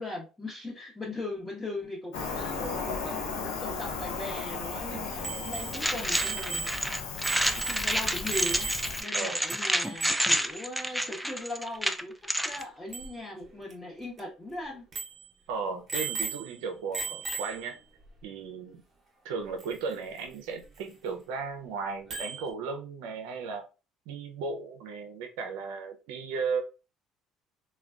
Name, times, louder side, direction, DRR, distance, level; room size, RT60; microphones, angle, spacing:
voice 1, 0.0-6.7 7.5-8.7 9.0-12.1 12.4-14.9, left 2 dB, 15° left, 0.9 m, -39 dB
Cricket, 2.1-9.0, left 4 dB, 90° left, 0.6 m, -35 dB
Bicycle bell, 5.2-9.2 9.5-9.6 9.8-10.4 12.6-12.7 12.9-13.1 13.7-13.8 14.2-14.3 14.9-15.3 15.9-16.6 16.9-17.7 19.6-19.7 22.1-22.5, right 5 dB, 40° right, 0.8 m, -36 dB
sound 1, 5.7-12.6, equal, ahead, 0.3 m, -29 dB
voice 2, 15.5-17.8 18.2-18.8 19.2-23.7 24.1-26.6, right 5 dB, 80° right, 0.4 m, -35 dB
3.3 x 2.2 x 2.4 m
supercardioid pair, 80°, 0 cm